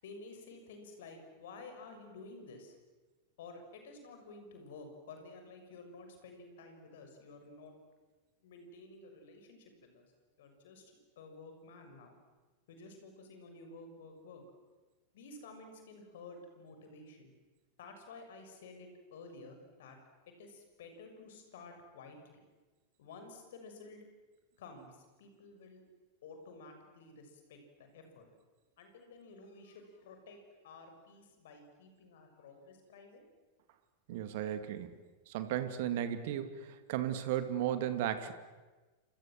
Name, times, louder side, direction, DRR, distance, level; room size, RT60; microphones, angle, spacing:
voice 1, 0.0-2.8 3.4-7.7 8.4-10.1 10.4-12.2 12.7-14.4 15.1-17.3 17.8-20.0 20.3-22.4 23.0-24.0 24.6-25.8 26.2-28.3 28.8-33.2 34.1-34.2, left 3 dB, 55° left, 5 dB, 6.6 m, -52 dB
voice 2, 34.1-34.9 35.3-38.3, right 11 dB, 50° right, 10 dB, 2.3 m, -35 dB
29.0 x 26.5 x 7.7 m, 1.3 s
figure-of-eight pair, 90°, 0 cm